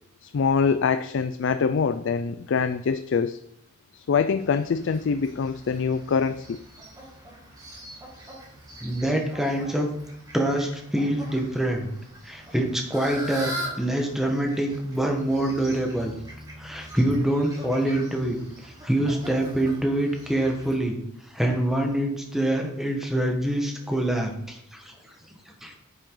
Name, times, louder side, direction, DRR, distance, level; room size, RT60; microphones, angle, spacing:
voice 1, 0.2-3.4 3.9-6.6, left 5 dB, 60° left, 11 dB, 0.4 m, -24 dB
Fowl, 4.4-20.7, equal, 20° right, 2.3 m, -42 dB
voice 2, 8.8-9.9 10.3-11.9 12.2-16.1 16.6-21.0 21.3-24.9 25.6-25.7, right 1 dB, ahead, 2 dB, 1.2 m, -25 dB
9.5 x 7.6 x 3.8 m, 0.76 s
head